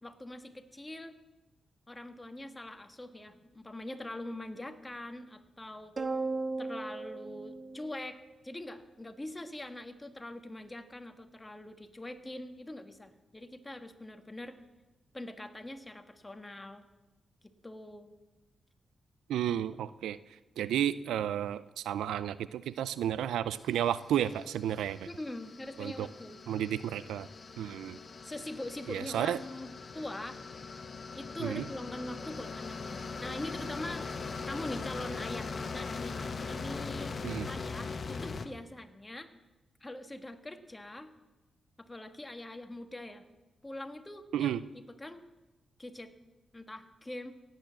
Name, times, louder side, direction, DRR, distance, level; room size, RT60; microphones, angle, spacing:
voice 1, 0.0-1.2 1.9-5.9 6.6-8.2 8.4-14.6 15.1-16.8 17.4-18.1 25.1-26.4 28.2-30.4 31.1-34.0 34.5-37.2 37.5-39.3 39.8-41.1 41.8-43.3 43.6-44.6 45.0-45.2 45.8-46.1 46.5-47.3, left 1 dB, 20° left, 7 dB, 1.6 m, -43 dB
sound 1, 6.0-8.6, right 3 dB, 45° right, 1.3 m, -36 dB
voice 2, 19.3-20.2 20.6-25.1 25.8-26.1 26.5-27.3 27.6-28.0 28.9-29.4 31.4-31.6 37.2-37.5 44.3-44.6, right 10 dB, 85° right, 16 dB, 0.4 m, -32 dB
sound 2, 23.8-38.5, left 4 dB, 50° left, 1.2 m, -41 dB
17.0 x 9.1 x 7.6 m, 1.1 s
supercardioid pair, 50°, 0 cm